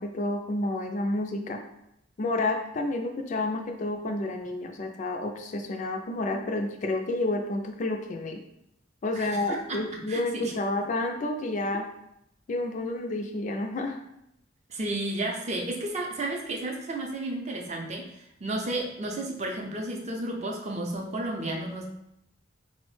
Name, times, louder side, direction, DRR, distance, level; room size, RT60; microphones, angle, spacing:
voice 1, 0.0-1.6 2.2-8.4 9.0-11.9 12.5-14.0, left 2 dB, 40° left, 4 dB, 0.3 m, -30 dB
voice 2, 9.1-9.8 10.1-10.5 14.7-21.9, right 2 dB, 35° right, 1 dB, 0.5 m, -32 dB
3.9 x 2.0 x 3.1 m, 0.79 s
head